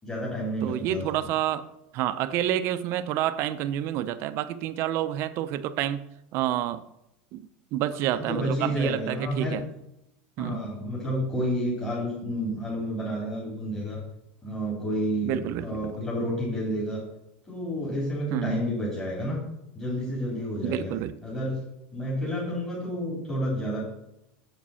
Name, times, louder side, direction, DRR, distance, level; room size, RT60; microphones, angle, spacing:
voice 1, 0.0-1.1 8.1-9.6 10.4-14.0 14.4-17.0 17.4-19.4 19.7-20.9 21.2-21.6 21.9-23.8, equal, 15° left, -6 dB, 3.5 m, -30 dB
voice 2, 0.6-1.7 1.9-6.0 6.3-6.8 7.3-9.6 10.4-10.7 15.2-15.8 18.3-18.6 20.6-21.1, right 12 dB, 50° right, 12 dB, 0.6 m, -29 dB
7.5 x 7.2 x 5.7 m, 0.84 s
supercardioid pair, 140°, 6 cm